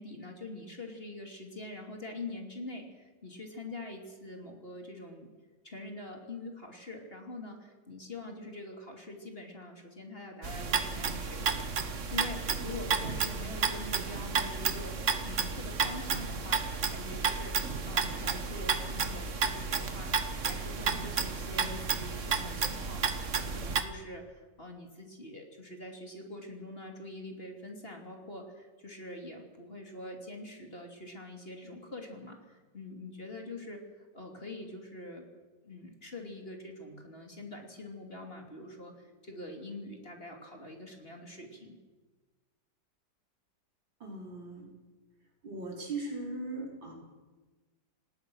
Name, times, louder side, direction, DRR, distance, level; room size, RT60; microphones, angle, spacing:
voice 1, 0.0-5.3 5.6-20.1 20.4-35.3 35.6-41.8, left 2 dB, 30° left, 2 dB, 3.1 m, -44 dB
sound 1, 10.4-23.8, right 5 dB, 40° right, 1.5 m, -32 dB
voice 2, 44.0-44.7 45.4-46.9, right 2 dB, 75° right, -1 dB, 5.8 m, -39 dB
27.5 x 19.0 x 6.4 m, 1.3 s
omnidirectional pair, 2.1 m